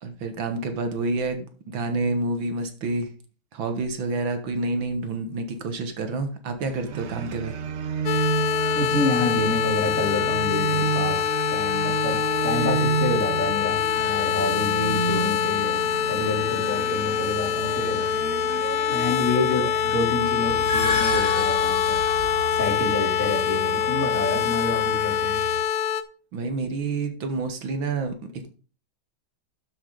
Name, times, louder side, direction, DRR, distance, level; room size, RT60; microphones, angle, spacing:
voice 1, 0.0-3.1 3.5-7.6 26.3-28.5, right 3 dB, 70° right, 7 dB, 2.0 m, -28 dB
sound 1, 6.6-25.6, right 7 dB, 85° right, 0.6 m, -32 dB
sound 2, 8.1-26.0, left 9 dB, 90° left, 1.7 m, -25 dB
voice 2, 8.7-12.2 12.4-18.1 18.4-18.6 18.9-22.0 22.5-25.4, left 2 dB, 40° left, -2 dB, 3.8 m, -28 dB
sound 3, 20.5-22.7, left 4 dB, 60° left, 3.5 m, -29 dB
12.5 x 6.9 x 3.9 m, 0.37 s
omnidirectional pair, 2.2 m